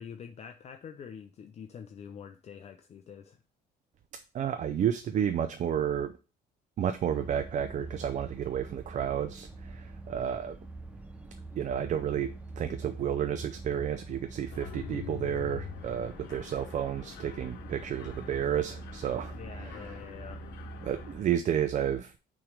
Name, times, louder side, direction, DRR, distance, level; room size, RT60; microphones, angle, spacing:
voice 1, 0.0-3.4 19.3-20.4, left 7 dB, 40° left, 0.5 m, -46 dB
voice 2, 4.3-6.1 6.8-10.6 11.5-19.9 20.8-22.2, right 9 dB, 45° right, 0.5 m, -31 dB
sound 1, 7.1-21.2, right 3 dB, 5° right, 1.0 m, -44 dB
Mechanisms, 14.5-21.2, left 12 dB, 85° left, 0.7 m, -46 dB
6.1 x 3.2 x 4.9 m
cardioid pair, 110°, 17 cm